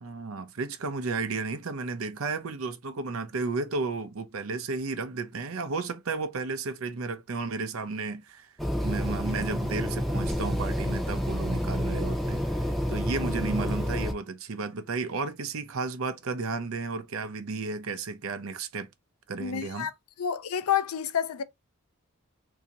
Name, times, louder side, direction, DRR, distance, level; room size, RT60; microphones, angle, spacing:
voice 1, 0.0-8.5 8.8-18.9 19.3-19.9, right 4 dB, 75° right, 0.6 m, -33 dB
sound 1, 8.6-14.1, equal, ahead, 0.7 m, -29 dB
voice 2, 19.4-19.9 20.2-21.4, left 8 dB, 90° left, 0.5 m, -29 dB
2.8 x 2.7 x 3.8 m
head